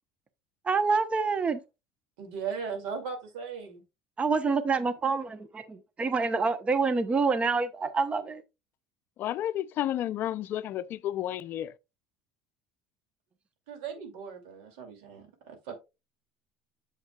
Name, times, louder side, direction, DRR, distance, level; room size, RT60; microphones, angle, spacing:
voice 1, 0.6-1.6 4.2-8.4, right 4 dB, 25° right, 0.9 m, -27 dB
voice 2, 2.2-3.8 13.7-15.8, right 6 dB, 80° right, 2.5 m, -38 dB
voice 3, 9.2-11.7, left 12 dB, 55° left, 0.5 m, -31 dB
7.9 x 7.3 x 2.3 m
supercardioid pair, 95°, 4 cm